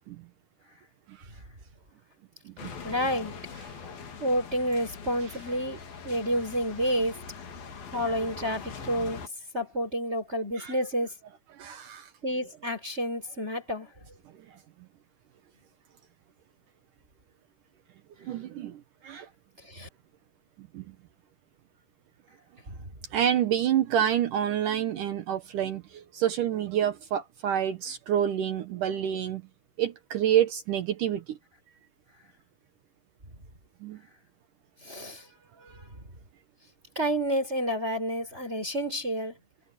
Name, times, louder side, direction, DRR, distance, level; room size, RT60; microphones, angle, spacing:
sound 1, 2.6-9.3, left 6 dB, 75° left, 5.0 m, -42 dB
voice 1, 2.8-3.3 4.2-7.2 7.9-9.2 9.5-11.1 12.2-13.9 19.6-19.9 22.7-22.8 34.8-35.3 35.6-35.9 36.9-39.3, equal, 15° right, 4.6 m, -29 dB
voice 2, 11.5-12.1 14.5-14.6 18.2-19.3 20.6-21.0 23.1-29.4 29.8-31.4 33.8-34.0, right 10 dB, 70° right, 2.4 m, -28 dB
omnidirectional pair, 4.2 m